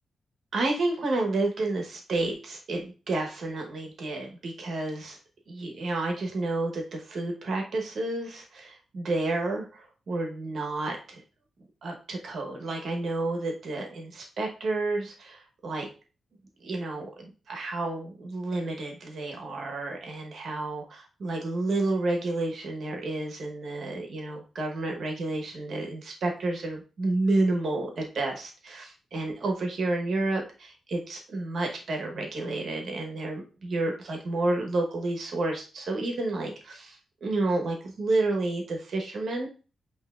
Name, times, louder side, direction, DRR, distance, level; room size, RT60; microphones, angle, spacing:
voice 1, 0.5-5.2 5.5-11.2 11.8-15.9 16.6-39.5, right 2 dB, 50° right, 2 dB, 0.9 m, -30 dB
8.0 x 2.8 x 2.3 m, 0.35 s
wide cardioid pair, 175°, 0 cm